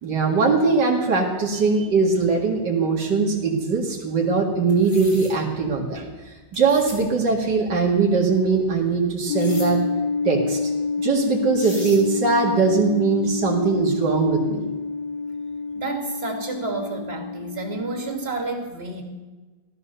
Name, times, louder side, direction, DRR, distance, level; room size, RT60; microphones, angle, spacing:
voice 1, 0.0-6.1 6.5-9.8 10.2-10.6 11.0-14.6, right 4 dB, 85° right, -1 dB, 2.7 m, -21 dB
sound 1, 4.7-5.3 6.5-7.0 9.4-9.7 11.2-11.3 11.6-12.0, left 1 dB, 45° left, 4.0 m, -38 dB
sound 2, 9.3-18.3, left 4 dB, 85° left, 1.3 m, -28 dB
voice 2, 15.8-19.0, right 3 dB, 35° right, 3 dB, 2.4 m, -30 dB
16.0 x 13.5 x 6.8 m, 1.3 s
omnidirectional pair, 1.8 m